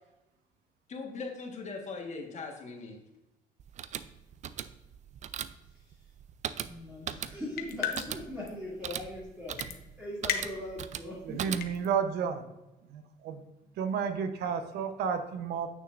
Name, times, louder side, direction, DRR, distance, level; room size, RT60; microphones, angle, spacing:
voice 1, 0.9-3.0, left 4 dB, 45° left, 2 dB, 1.5 m, -40 dB
sound 1, 3.6-12.0, right 9 dB, 45° right, 0.4 m, -40 dB
voice 2, 6.6-11.6, left 1 dB, 10° right, -8 dB, 2.5 m, -41 dB
sound 2, 7.6-8.2 8.5-8.6 9.6-9.8 10.3-10.8 11.4-11.9, left 8 dB, 65° left, 0.9 m, -33 dB
voice 3, 11.2-12.4 12.9-13.4 13.8-15.7, right 7 dB, 75° right, 9 dB, 0.9 m, -31 dB
8.8 x 6.5 x 2.5 m, 1.0 s
cardioid pair, 110°, 17 cm